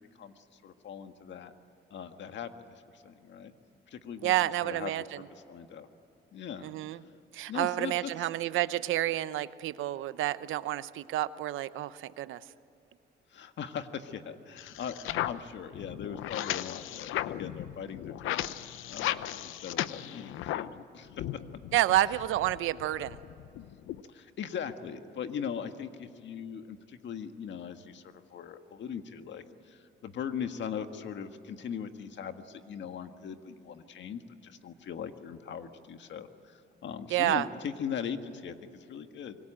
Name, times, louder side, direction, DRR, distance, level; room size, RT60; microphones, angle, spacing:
voice 1, 0.0-1.5 1.9-3.5 3.9-4.3 4.6-5.1 5.5-5.9 6.3-6.7 7.5-7.9 8.2-8.3 13.3-18.5 18.9-21.2 24.1-39.4, left 7 dB, 65° left, 8 dB, 1.7 m, -40 dB
voice 2, 4.2-5.2 6.6-7.0 7.3-12.4 21.7-23.2 37.1-37.5, right 14 dB, 85° right, 15 dB, 0.8 m, -29 dB
sound 1, 14.6-20.8 21.1-24.0, left 13 dB, 90° left, 0.8 m, -36 dB
25.5 x 23.0 x 9.0 m, 2.7 s
cardioid pair, 90°, 20 cm